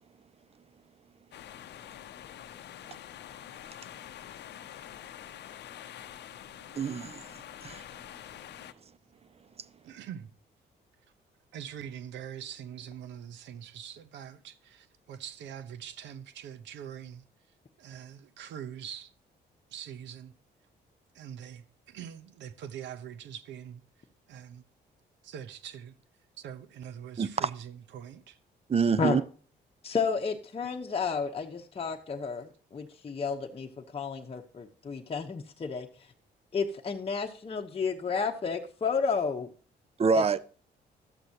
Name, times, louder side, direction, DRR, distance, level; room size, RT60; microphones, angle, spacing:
sound 1, 1.3-8.7, left 11 dB, 70° left, 0.7 m, -46 dB
voice 1, 6.7-7.8 27.2-27.5 28.7-29.2 40.0-40.4, right 5 dB, 35° right, 0.6 m, -27 dB
voice 2, 9.8-10.3 11.5-17.2 17.8-19.1 19.7-20.3 21.1-23.8 24.3-24.6 25.2-25.9 26.4-28.4, right 9 dB, 85° right, 0.9 m, -43 dB
voice 3, 29.8-35.9 36.5-39.5 40.1-40.4, left 5 dB, 30° left, 0.9 m, -32 dB
12.0 x 7.8 x 2.8 m
cardioid pair, 80°, 18 cm